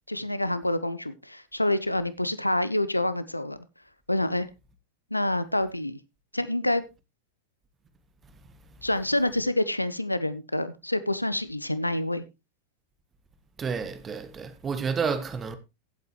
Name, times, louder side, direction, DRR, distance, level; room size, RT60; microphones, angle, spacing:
voice 1, 0.1-3.6 4.1-4.5 5.1-6.0 6.3-6.8 8.8-12.2, left 1 dB, 85° left, 0.7 m, -27 dB
voice 2, 13.6-15.6, right 5 dB, 20° right, 1.4 m, -30 dB
15.5 x 8.2 x 3.1 m
figure-of-eight pair, 90°, 0 cm